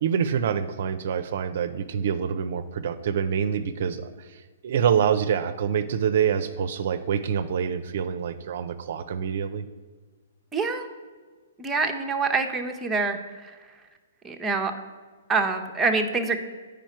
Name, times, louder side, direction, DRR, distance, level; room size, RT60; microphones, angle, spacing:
voice 1, 0.0-4.1 4.6-9.6, right 8 dB, 60° right, 10 dB, 0.5 m, -26 dB
voice 2, 10.5-10.9 11.6-13.2 14.2-14.7 15.3-16.4, right 4 dB, 10° right, 3 dB, 0.7 m, -25 dB
9.1 x 5.0 x 4.5 m, 1.4 s
hypercardioid pair, 140°, 0 cm